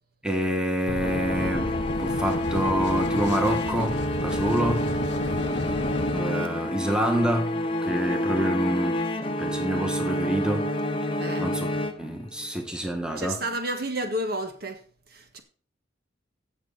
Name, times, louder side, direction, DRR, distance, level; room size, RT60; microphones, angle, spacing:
voice 1, 0.2-4.9 6.1-9.0 9.4-10.7 11.4-11.7 12.0-13.4, equal, 5° right, 1.8 m, -27 dB
sound 1, 0.9-6.2, left 2 dB, 65° left, 0.8 m, -32 dB
sound 2, 1.0-12.5, left 1 dB, 30° left, 1.0 m, -28 dB
voice 2, 5.2-5.9 11.2-11.5 12.4-12.5 13.2-14.8 15.1-15.4, right 1 dB, 55° right, 1.6 m, -32 dB
16.5 x 7.0 x 4.1 m
head